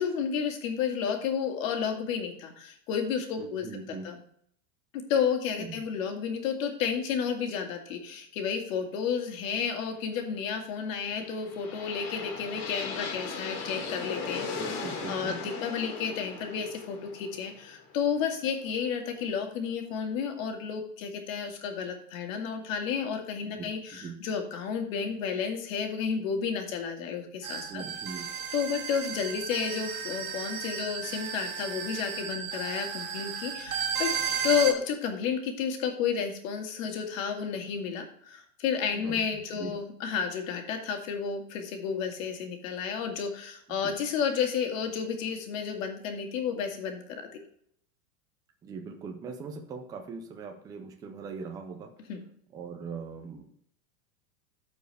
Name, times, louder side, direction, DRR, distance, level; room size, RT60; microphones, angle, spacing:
voice 1, 0.0-4.2 4.9-14.6 15.1-27.8 28.5-34.1 34.4-47.4 52.1-52.2, left 7 dB, 65° left, 4 dB, 2.0 m, -31 dB
voice 2, 3.4-4.1 5.6-5.9 14.5-15.4 23.4-24.2 27.7-28.3 38.9-39.7 43.7-43.9 48.6-51.9 52.5-53.4, right 5 dB, 10° right, 4 dB, 0.4 m, -41 dB
sound 1, 11.0-18.9, left 4 dB, 45° left, 2.1 m, -38 dB
sound 2, 27.4-34.7, right 7 dB, 85° right, 2.0 m, -34 dB
14.0 x 4.6 x 3.4 m, 0.65 s
supercardioid pair, 165°, 42 cm